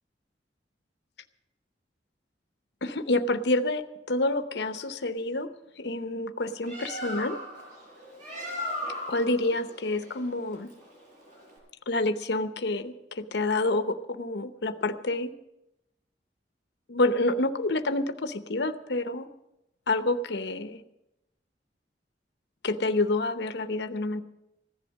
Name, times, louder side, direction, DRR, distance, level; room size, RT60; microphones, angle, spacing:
voice 1, 2.8-5.5 5.8-7.4 9.1-10.7 11.9-15.3 16.9-19.3 19.9-20.8 22.6-24.2, left 2 dB, 65° left, 9 dB, 0.8 m, -28 dB
Bird, 6.4-11.6, left 1 dB, 45° right, 6.6 m, -38 dB
15.5 x 11.0 x 6.4 m, 0.90 s
head